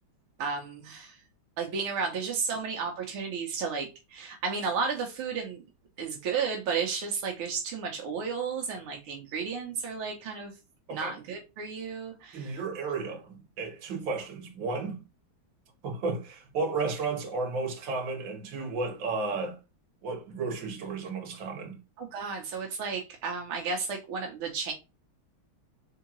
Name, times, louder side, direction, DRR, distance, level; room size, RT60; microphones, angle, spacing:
voice 1, 0.4-1.2 1.6-5.6 6.0-10.5 10.9-12.6 22.0-24.7, right 5 dB, 85° right, 1.8 m, -33 dB
voice 2, 12.3-15.0 15.8-19.6 20.0-21.8, right 4 dB, 70° right, 2.0 m, -33 dB
4.3 x 3.7 x 3.0 m
omnidirectional pair, 2.2 m